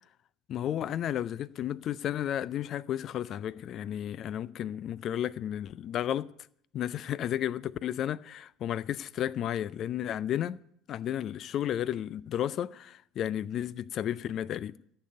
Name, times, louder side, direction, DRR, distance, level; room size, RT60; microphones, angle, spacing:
voice 1, 0.5-6.3 6.7-10.6 10.9-15.0, left 11 dB, 50° left, 0.4 m, -33 dB
14.5 x 6.8 x 7.8 m
figure-of-eight pair, 65°, 0 cm